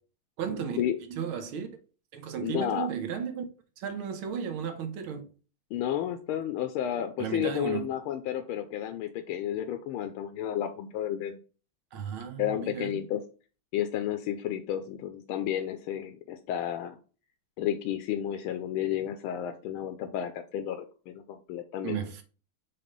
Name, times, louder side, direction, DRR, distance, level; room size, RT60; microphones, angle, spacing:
voice 1, 0.4-0.8 1.1-1.7 2.1-3.4 3.8-5.3 7.2-7.9 11.9-13.0 21.8-22.2, right 7 dB, 80° right, 1.7 m, -34 dB
voice 2, 2.4-2.9 5.7-11.4 12.4-13.2 13.7-17.0 17.6-22.0, left 10 dB, 80° left, 1.4 m, -32 dB
5.9 x 3.3 x 5.2 m
omnidirectional pair, 2.4 m